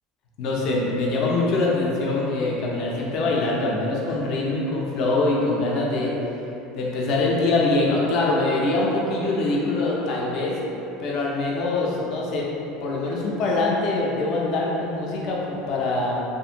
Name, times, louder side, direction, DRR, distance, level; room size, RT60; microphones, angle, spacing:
voice 1, 0.4-6.1 6.7-10.6 11.0-12.5 12.8-16.2, left 2 dB, 45° left, -4 dB, 0.4 m, -23 dB
2.6 x 2.5 x 2.7 m, 2.9 s
cardioid pair, 170°, 0 cm